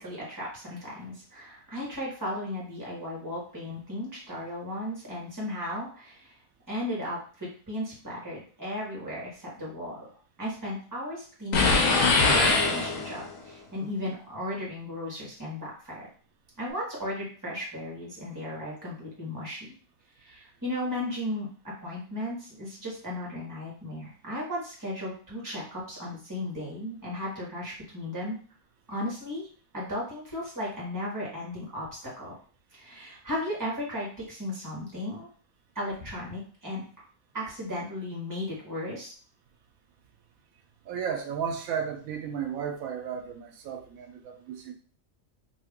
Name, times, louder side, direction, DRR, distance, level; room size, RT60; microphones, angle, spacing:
voice 1, 0.0-6.3 6.7-10.0 10.4-16.0 16.6-19.7 20.2-28.4 28.9-29.5 29.7-32.3 32.7-35.3 35.7-36.8 37.3-39.1, left 1 dB, 15° right, -5 dB, 1.3 m, -35 dB
sound 1, 11.5-13.4, left 3 dB, 75° left, 1.1 m, -22 dB
voice 2, 40.9-44.7, right 7 dB, 85° right, 4 dB, 1.0 m, -34 dB
2.7 x 2.7 x 3.6 m, 0.41 s
omnidirectional pair, 1.4 m